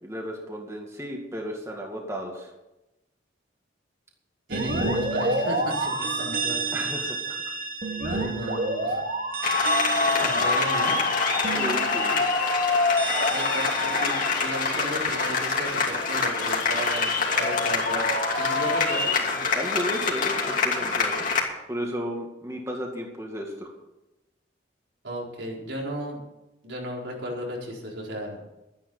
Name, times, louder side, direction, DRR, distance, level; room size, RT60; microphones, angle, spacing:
voice 1, 0.0-2.5 6.7-7.5 8.0-8.6 10.2-10.6 11.5-12.3 19.5-21.3 21.7-23.7, equal, 15° right, 0 dB, 2.1 m, -34 dB
sound 1, 4.5-16.1, right 2 dB, 50° right, 2.2 m, -30 dB
voice 2, 4.5-6.9 8.3-9.0 10.2-11.0 13.3-18.0 18.3-19.2 25.0-26.2 26.6-28.4, equal, 80° right, -2 dB, 4.3 m, -34 dB
sound 2, 9.4-21.4, left 4 dB, 45° left, 2.8 m, -25 dB
12.5 x 10.5 x 6.9 m, 0.97 s
head